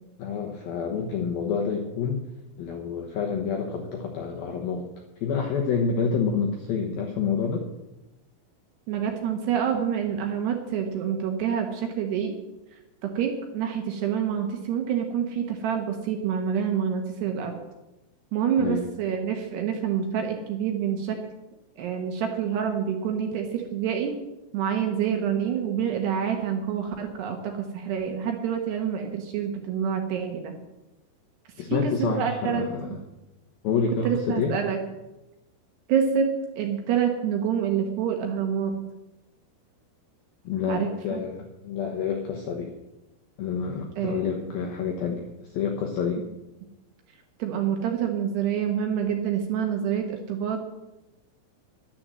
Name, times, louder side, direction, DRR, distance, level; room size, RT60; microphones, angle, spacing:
voice 1, 0.2-2.2 2.6-4.9 5.2-7.6 18.6-18.8 31.6-33.0 33.6-34.5 40.4-42.7 43.4-46.2, left 6 dB, 80° left, 1 dB, 2.2 m, -28 dB
voice 2, 8.9-12.3 13.0-17.6 18.3-21.2 21.8-24.1 24.5-30.5 31.7-32.6 34.0-34.8 35.9-38.7 40.7-41.2 44.0-44.2 46.2-46.3 47.4-50.6, right 8 dB, 70° right, 3 dB, 2.8 m, -27 dB
11.5 x 10.5 x 7.6 m, 1.0 s
omnidirectional pair, 6.0 m